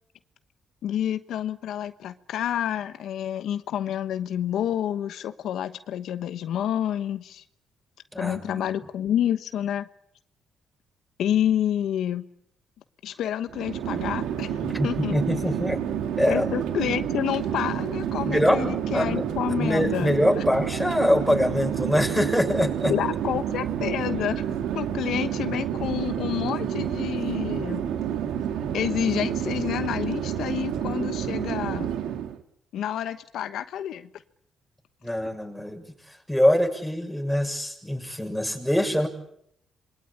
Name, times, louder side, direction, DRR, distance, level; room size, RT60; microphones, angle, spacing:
voice 1, 0.8-7.4 8.2-9.9 11.2-12.3 13.0-15.2 16.3-20.4 22.9-24.4 24.7-27.8 28.7-31.9 32.7-34.1, left 10 dB, 75° left, 10 dB, 1.1 m, -29 dB
voice 2, 8.1-8.7 14.6-15.8 16.2-16.5 18.3-19.2 19.6-22.9 35.0-39.1, equal, ahead, 3 dB, 7.0 m, -24 dB
Chatter / Fixed-wing aircraft airplane, 13.5-32.4, right 9 dB, 85° right, 2.0 m, -29 dB
27.0 x 22.5 x 8.8 m, 0.73 s
cardioid pair, 90°, 0 cm